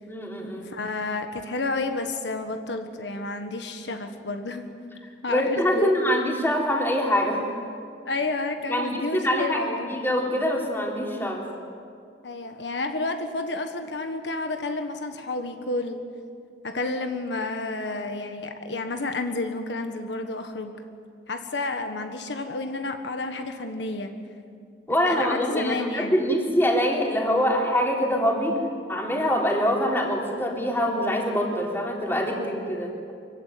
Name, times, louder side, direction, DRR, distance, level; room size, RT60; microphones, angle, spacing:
voice 1, 0.1-0.7 5.3-7.5 8.7-9.6 9.9-11.4 24.9-28.6 28.9-32.9, equal, 15° left, -1 dB, 3.4 m, -24 dB
voice 2, 0.6-4.7 5.2-5.9 8.0-9.9 12.2-16.0 16.6-20.7 21.3-24.1 25.1-26.3 32.4-32.5, left 2 dB, 85° left, 6 dB, 1.5 m, -30 dB
24.5 x 15.5 x 9.4 m, 2.3 s
head